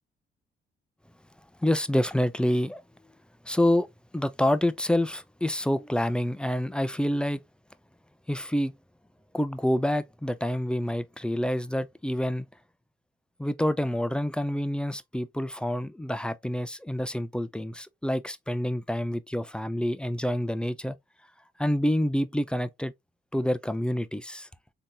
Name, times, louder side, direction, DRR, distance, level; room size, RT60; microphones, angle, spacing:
voice 1, 1.6-2.8 3.4-3.9 4.1-7.4 8.3-8.7 9.3-12.5 13.4-21.0 21.6-22.9 23.3-24.5, left 1 dB, 5° left, 0.3 m, -27 dB
3.7 x 2.8 x 2.8 m
cardioid pair, 90°, 20 cm